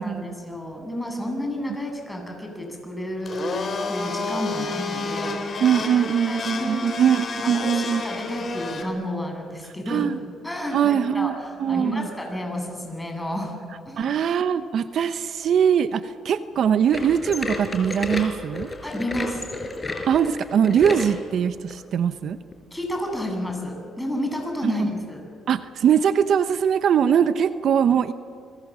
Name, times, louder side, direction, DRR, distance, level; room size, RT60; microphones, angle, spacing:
voice 1, 0.0-5.6 5.9-6.9 7.4-10.1 10.4-13.6 13.9-14.1 18.8-19.4 22.7-25.2, left 1 dB, 10° left, 2 dB, 7.6 m, -31 dB
Domestic sounds home sounds, 3.2-8.8, left 4 dB, 45° left, 4.3 m, -30 dB
voice 2, 5.6-8.0 9.9-10.2 10.7-11.3 11.6-12.1 14.0-18.7 20.1-22.4 24.6-24.9 25.5-28.1, right 8 dB, 65° right, 11 dB, 0.9 m, -21 dB
sound 1, 16.9-21.2 21.7-21.8 22.5-22.6 23.5-23.6, left 2 dB, 25° left, 4.8 m, -31 dB
30.0 x 23.0 x 7.6 m, 2.1 s
cardioid pair, 90°, 0 cm